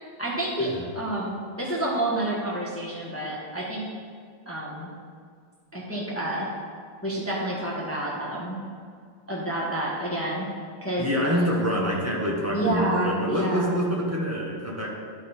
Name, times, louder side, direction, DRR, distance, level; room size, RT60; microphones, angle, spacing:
voice 1, 0.2-3.8 4.4-4.9 5.7-6.5 7.0-8.6 9.3-10.5 10.8-11.1 12.5-13.7, right 1 dB, 10° left, -5 dB, 1.2 m, -29 dB
voice 2, 11.0-14.9, equal, 10° right, -4 dB, 0.9 m, -26 dB
12.0 x 5.3 x 4.3 m, 2.1 s
omnidirectional pair, 2.3 m